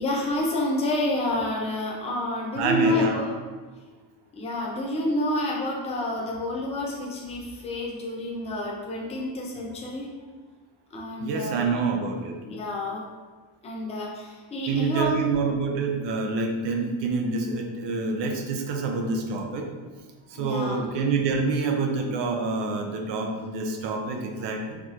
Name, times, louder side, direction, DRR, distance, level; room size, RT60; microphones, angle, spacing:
voice 1, 0.0-3.4 4.3-10.1 10.9-11.8 12.4-13.1 13.6-15.3 20.3-20.9, left 1 dB, 15° left, -2 dB, 0.3 m, -29 dB
voice 2, 2.6-3.1 11.2-12.3 14.7-19.7 20.3-24.8, right 4 dB, 65° right, 3 dB, 0.6 m, -27 dB
4.7 x 2.9 x 2.4 m, 1.4 s
cardioid pair, 170°, 47 cm